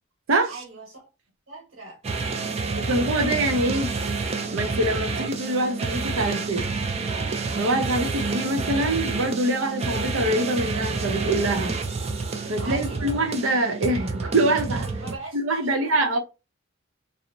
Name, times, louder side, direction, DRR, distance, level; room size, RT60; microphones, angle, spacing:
voice 1, 0.5-1.1 1.5-2.3 2.6-3.0 12.6-13.2 15.0-16.2, right 3 dB, 65° right, 1.1 m, -41 dB
sound 1, 2.0-15.2, right 4 dB, 30° right, 0.4 m, -29 dB
voice 2, 2.8-3.9 4.5-6.7 7.5-11.8 12.5-14.9 15.4-16.2, right 1 dB, 85° right, 0.7 m, -24 dB
2.7 x 2.0 x 2.6 m
head